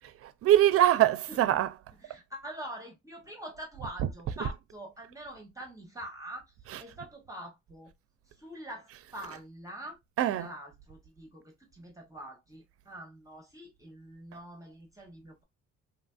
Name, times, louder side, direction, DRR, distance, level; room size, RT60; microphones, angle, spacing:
voice 1, 0.2-1.8 3.8-4.5 6.7-6.8 8.9-9.3 10.2-10.5, right 12 dB, 50° right, 0.4 m, -25 dB
voice 2, 2.0-7.9 8.3-10.0 10.4-15.4, right 1 dB, 10° right, 0.8 m, -45 dB
2.9 x 2.4 x 2.3 m
cardioid pair, 90°, 30 cm